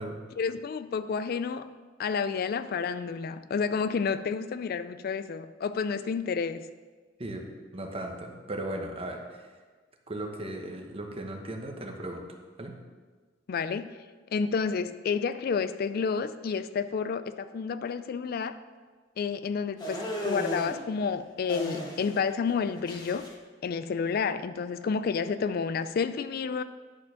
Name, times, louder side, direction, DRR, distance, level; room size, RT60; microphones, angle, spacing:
voice 1, 0.4-1.7 2.0-6.7 13.5-14.0 14.3-18.6 19.2-23.3 23.6-26.6, left 5 dB, 50° left, 13 dB, 0.3 m, -30 dB
voice 2, 7.7-9.5 10.1-12.3 12.6-12.8, right 1 dB, 30° right, 2 dB, 1.0 m, -37 dB
sound 1, 19.8-20.8 21.5-22.2 22.5-23.3, equal, 25° left, 1.4 m, -35 dB
11.0 x 4.5 x 6.4 m, 1.4 s
head